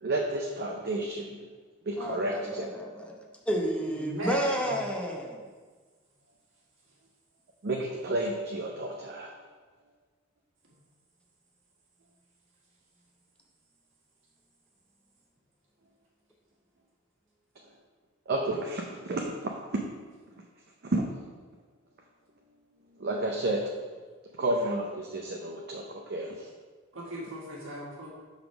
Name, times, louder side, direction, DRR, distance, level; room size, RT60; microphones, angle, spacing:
voice 1, 0.0-1.4 1.9-2.7 7.6-9.3 18.3-19.2 20.8-21.0 23.0-23.6 24.4-26.5, right 2 dB, 55° right, 0 dB, 0.6 m, -31 dB
voice 2, 2.0-3.1 3.5-5.4, equal, 5° left, 0 dB, 0.8 m, -31 dB
voice 3, 3.9-4.8 26.9-28.1, right 1 dB, 70° right, -4 dB, 1.7 m, -37 dB
5.2 x 4.0 x 5.9 m, 1.4 s
head